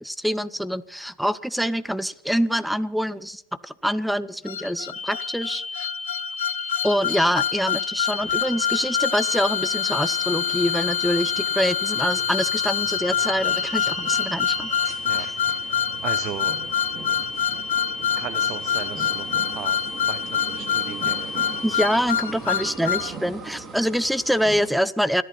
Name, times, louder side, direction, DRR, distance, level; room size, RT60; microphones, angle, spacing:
voice 1, 0.0-5.9 6.8-14.7 15.2-15.4 21.6-25.2, equal, ahead, 19 dB, 0.7 m, -25 dB
sound 1, 4.5-23.1, left 9 dB, 80° left, 0.7 m, -26 dB
sound 2, 4.9-22.1, left 3 dB, 20° left, 1.4 m, -34 dB
sound 3, 8.1-24.7, right 4 dB, 30° right, 3.0 m, -40 dB
voice 2, 15.0-15.6 16.0-16.6 18.2-19.2 19.6-19.8 20.1-20.2 20.6-21.3 22.5-22.6, right 13 dB, 45° right, 15 dB, 0.7 m, -36 dB
29.5 x 11.0 x 4.2 m, 0.67 s
hypercardioid pair, 95°, 0 cm